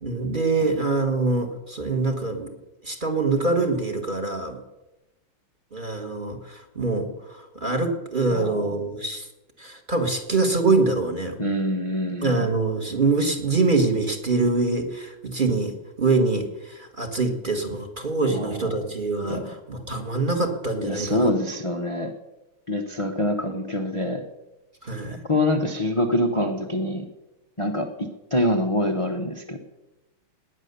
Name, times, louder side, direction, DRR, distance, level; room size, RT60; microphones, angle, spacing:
voice 1, 0.0-2.5 2.8-4.6 5.7-9.3 9.6-11.4 12.2-15.7 16.0-21.3 24.8-25.2, right 3 dB, 25° right, 4 dB, 1.6 m, -24 dB
voice 2, 8.3-8.7 11.4-12.5 18.3-18.9 19.2-19.6 20.8-22.1 22.7-24.2 25.3-27.0 27.6-29.6, left 1 dB, 25° left, 3 dB, 0.7 m, -25 dB
19.0 x 9.6 x 6.9 m, 1.0 s
omnidirectional pair, 2.4 m